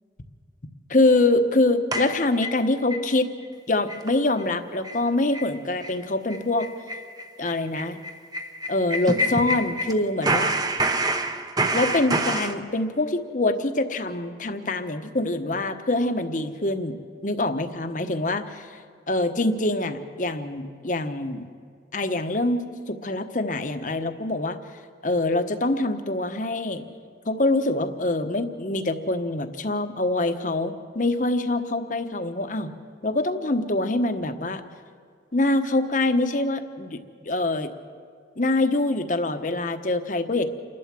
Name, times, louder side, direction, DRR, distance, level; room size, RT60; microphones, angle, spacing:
voice 1, 0.9-3.3 3.7-6.7 7.4-8.0 8.7-10.5 11.7-17.0 17.2-18.7 19.1-21.5 21.9-24.6 25.0-26.8 27.3-32.7 33.0-34.6 35.3-37.0 37.2-37.7 38.4-40.5, left 2 dB, 45° left, 8 dB, 1.1 m, -24 dB
sound 1, 1.9-3.0 3.4-3.5 3.9-4.1 4.4-4.5 4.8-5.0 5.3-5.5 5.8-6.0 6.3-9.9 10.2-12.5, right 1 dB, 20° right, 0.9 m, -27 dB
28.5 x 12.0 x 7.5 m, 2.1 s
head